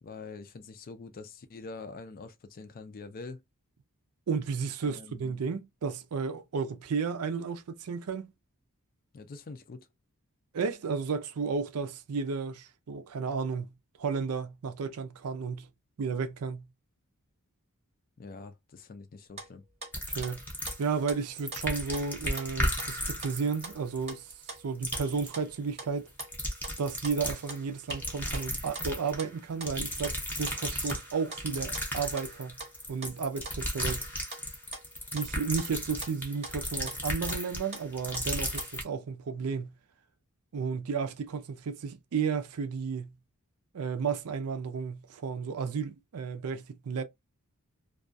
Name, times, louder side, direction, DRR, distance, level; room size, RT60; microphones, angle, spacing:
voice 1, 0.0-3.4 4.8-5.2 9.1-9.9 18.2-19.6, left 4 dB, 40° left, 0.4 m, -45 dB
voice 2, 4.3-8.3 10.5-15.7 16.0-16.7 20.1-20.5 20.8-24.3 24.6-26.1 26.8-32.6 32.9-34.1 35.1-39.8 40.5-43.1 43.7-47.0, right 5 dB, 75° right, 0.5 m, -33 dB
sound 1, 19.3-19.9 20.2-21.6 21.9-34.9 35.2-38.7, right 3 dB, 30° right, 0.7 m, -44 dB
sound 2, 19.9-21.1 21.4-24.6 24.8-25.3 26.1-27.6 27.9-29.2 29.6-38.8, equal, 10° left, 0.7 m, -35 dB
2.3 x 2.3 x 2.5 m
head